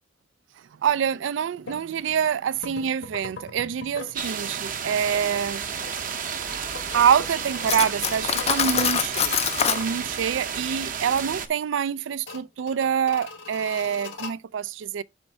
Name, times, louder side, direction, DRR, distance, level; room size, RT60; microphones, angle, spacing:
voice 1, 0.8-5.7 6.9-9.3 9.7-15.0, right 8 dB, 80° right, 0.3 m, -26 dB
sound 1, 1.6-1.8 2.6-4.2 4.5-9.8 10.1-10.2 10.7-11.2 11.5-11.6 12.1-14.3, left 4 dB, 85° left, 1.7 m, -41 dB
sound 2, 4.1-11.5, right 7 dB, 45° right, 0.7 m, -32 dB
Cutlery silverware, 7.7-9.9, left 9 dB, 35° left, 0.3 m, -25 dB
5.3 x 4.4 x 6.1 m
head